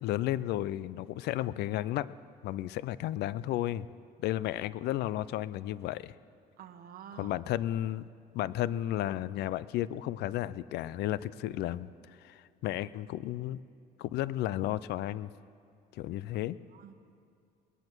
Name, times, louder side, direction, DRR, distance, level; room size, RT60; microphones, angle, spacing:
voice 1, 0.0-2.1 2.4-3.9 4.2-6.1 7.2-8.0 8.3-11.9 12.2-13.6 14.0-15.3 15.9-16.6, left 14 dB, 75° left, 18 dB, 0.5 m, -33 dB
voice 2, 6.6-7.4 16.7-16.9, right 9 dB, 60° right, 9 dB, 1.1 m, -48 dB
20.5 x 10.5 x 6.1 m, 2.3 s
cardioid pair, 110°, 17 cm